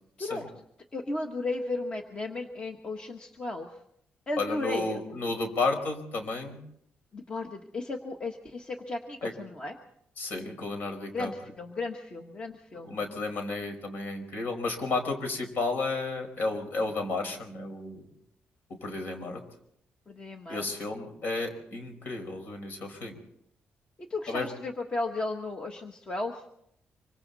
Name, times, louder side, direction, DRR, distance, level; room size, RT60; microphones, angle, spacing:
voice 1, 0.2-0.5 0.9-3.7 4.3-5.0 7.1-9.8 11.1-12.9 20.1-20.6 24.1-26.4, left 2 dB, 25° left, 3 dB, 1.4 m, -35 dB
voice 2, 4.4-6.6 9.2-9.3 10.2-11.3 12.8-18.0 18.8-19.4 20.5-23.2 24.3-24.5, left 3 dB, 55° left, 5 dB, 5.1 m, -32 dB
26.0 x 24.5 x 4.1 m, 0.72 s
wide cardioid pair, 180°, 4 cm